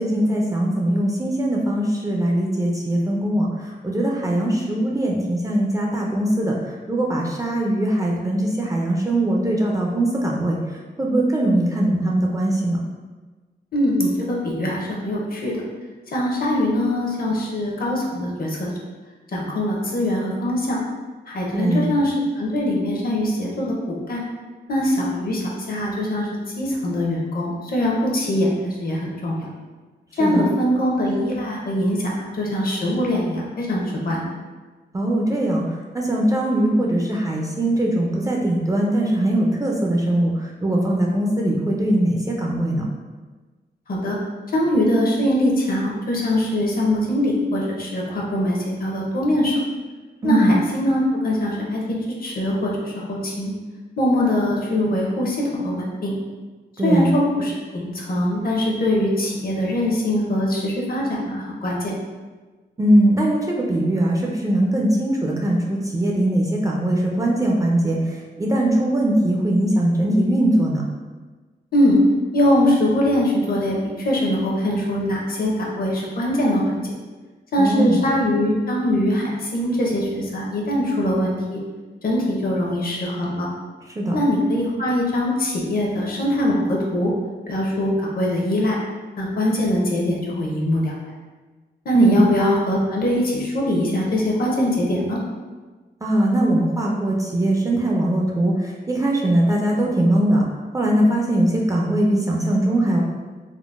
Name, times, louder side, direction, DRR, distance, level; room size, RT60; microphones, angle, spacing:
voice 1, 0.0-10.6 11.0-12.8 21.5-21.9 30.2-30.4 34.9-35.6 35.9-42.8 50.2-50.5 56.8-57.1 62.8-70.8 77.6-78.0 84.0-84.2 91.9-92.2 96.0-100.4 100.7-103.0, right 1 dB, 20° right, -2 dB, 0.3 m, -21 dB
voice 2, 13.7-15.6 16.1-18.7 19.3-20.8 21.3-24.2 24.7-26.3 26.6-29.5 30.2-34.2 43.9-44.2 44.5-49.5 50.2-51.8 52.2-53.5 54.0-56.1 56.8-61.9 71.7-72.0 72.3-76.8 77.5-81.6 82.0-83.5 84.1-87.1 87.5-88.8 89.2-90.9 91.9-95.2, left 1 dB, 55° left, -3 dB, 0.6 m, -22 dB
3.6 x 2.0 x 2.4 m, 1.3 s
wide cardioid pair, 130°, 18 cm